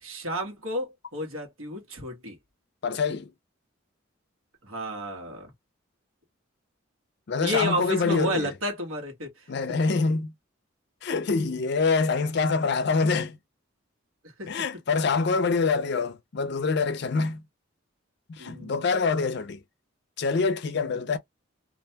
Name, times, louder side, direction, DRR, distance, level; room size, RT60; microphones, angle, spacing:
voice 1, 0.0-2.3 4.6-5.5 7.4-9.5 14.4-14.5 18.4-18.8, equal, 90° right, 1.2 m, -31 dB
voice 2, 2.8-3.3 7.3-8.5 9.5-10.3 11.0-13.4 14.5-17.4 18.3-19.6 20.2-21.2, left 4 dB, 55° left, 0.4 m, -25 dB
2.5 x 2.2 x 2.7 m
head